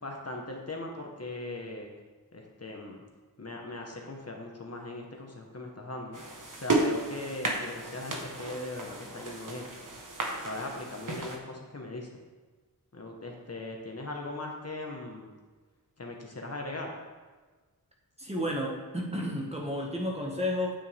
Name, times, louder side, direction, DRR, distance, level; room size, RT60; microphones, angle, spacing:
voice 1, 0.0-1.9 2.3-3.0 3.4-6.2 6.5-9.7 10.4-12.1 12.9-15.3 16.0-16.9, left 2 dB, 45° left, 0 dB, 1.4 m, -39 dB
sound 1, 6.1-11.4, right 2 dB, 60° right, 1.4 m, -33 dB
voice 2, 18.2-20.7, left 1 dB, 15° right, -2 dB, 1.8 m, -32 dB
9.1 x 8.3 x 3.6 m, 1.3 s
wide cardioid pair, 65°, 36 cm